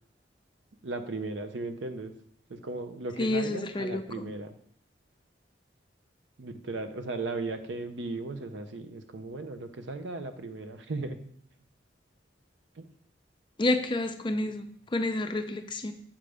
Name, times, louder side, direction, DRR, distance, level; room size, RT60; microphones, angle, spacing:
voice 1, 0.8-2.1 2.5-4.6 6.4-11.3 12.7-12.8, right 3 dB, 90° right, 8 dB, 0.7 m, -36 dB
voice 2, 3.2-4.3 13.6-15.9, left 2 dB, 30° left, 7 dB, 0.5 m, -29 dB
7.4 x 5.1 x 3.4 m, 0.63 s
head